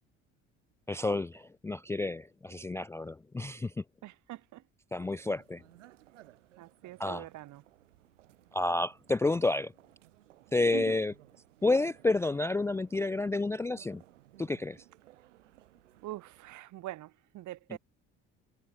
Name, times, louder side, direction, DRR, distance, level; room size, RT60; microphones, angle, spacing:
voice 1, 0.9-3.8 4.9-5.6 7.0-7.2 8.5-9.7 10.5-11.1 11.6-14.0 14.4-14.8 17.7-17.8, left 2 dB, 10° left, 0.4 m, -30 dB
voice 2, 4.0-4.6 5.2-5.3 6.6-7.6 10.7-11.0 16.0-17.8, right 16 dB, 50° right, 1.3 m, -43 dB
sound 1, 4.9-16.6, right 15 dB, 75° right, 3.1 m, -60 dB
figure-of-eight pair, 55°, 37 cm